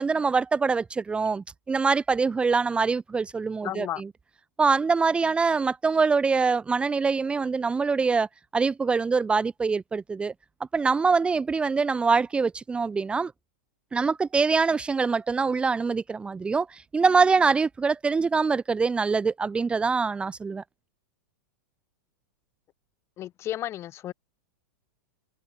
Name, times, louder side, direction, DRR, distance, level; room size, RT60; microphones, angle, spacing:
voice 1, 0.0-4.1 4.6-8.3 8.5-10.3 10.7-13.3 13.9-20.6, right 4 dB, 10° right, 1.9 m, -24 dB
voice 2, 3.6-4.0 23.2-24.1, left 13 dB, 25° left, 3.9 m, -33 dB
supercardioid pair, 155°, 10 cm